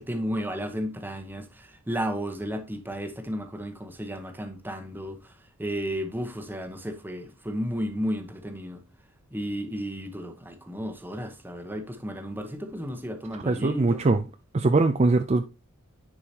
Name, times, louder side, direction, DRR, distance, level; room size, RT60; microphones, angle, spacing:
voice 1, 0.0-5.3 5.6-8.8 9.3-14.0, equal, 10° right, 1.0 m, -33 dB
voice 2, 13.3-14.2 14.5-15.4, right 3 dB, 30° right, 0.4 m, -22 dB
9.9 x 4.7 x 2.8 m
head